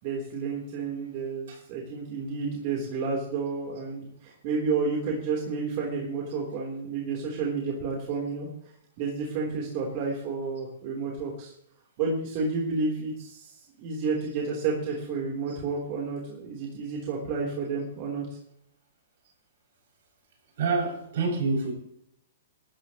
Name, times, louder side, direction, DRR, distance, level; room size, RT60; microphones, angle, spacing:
voice 1, 0.0-11.5 12.0-18.4, right 4 dB, 40° right, 3.9 m, -31 dB
voice 2, 20.6-21.7, right 4 dB, 65° right, 7.3 m, -27 dB
19.0 x 14.0 x 3.2 m
hypercardioid pair, 150°, 0 cm